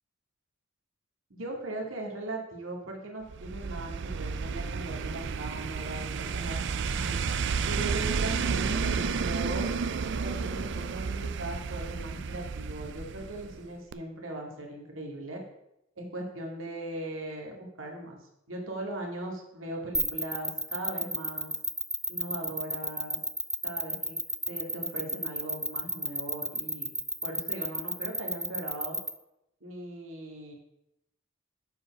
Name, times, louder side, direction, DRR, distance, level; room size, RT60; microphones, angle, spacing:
voice 1, 1.3-7.1 7.7-9.7 10.2-15.4 16.0-18.2 18.5-21.5 22.1-23.2 23.6-24.2 24.5-26.9 27.2-29.0 29.6-30.5, right 2 dB, 85° right, 0 dB, 2.1 m, -39 dB
sound 1, 3.3-13.7 13.9-14.0, right 5 dB, 60° right, 0.5 m, -31 dB
sound 2, 19.9-29.1, right 1 dB, ahead, 0.5 m, -31 dB
8.2 x 4.8 x 6.0 m, 0.84 s
head